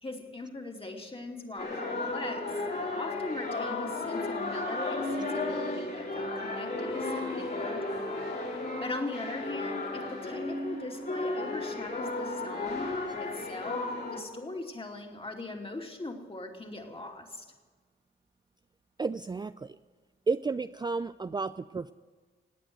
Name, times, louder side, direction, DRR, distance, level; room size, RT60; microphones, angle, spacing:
voice 1, 0.0-2.6 2.9-8.0 8.8-17.5, left 2 dB, 25° left, 2 dB, 2.7 m, -40 dB
sound 1, 1.6-14.2, left 2 dB, 50° left, 3.9 m, -34 dB
voice 2, 19.0-19.8 20.3-21.9, right 4 dB, 20° right, 12 dB, 0.4 m, -32 dB
18.5 x 8.8 x 7.8 m, 1.4 s
cardioid pair, 65°, 21 cm